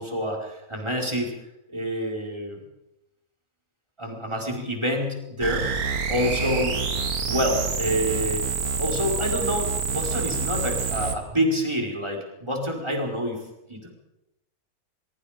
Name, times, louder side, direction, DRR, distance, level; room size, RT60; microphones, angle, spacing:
voice 1, 0.0-1.3 1.7-2.6 4.0-5.6 6.1-6.8 7.2-8.4 8.8-13.4 13.7-13.9, equal, 20° right, 0 dB, 4.8 m, -27 dB
sound 1, 5.4-11.2, right 5 dB, 85° right, 2.2 m, -27 dB
23.5 x 23.0 x 5.2 m, 0.90 s
omnidirectional pair, 1.5 m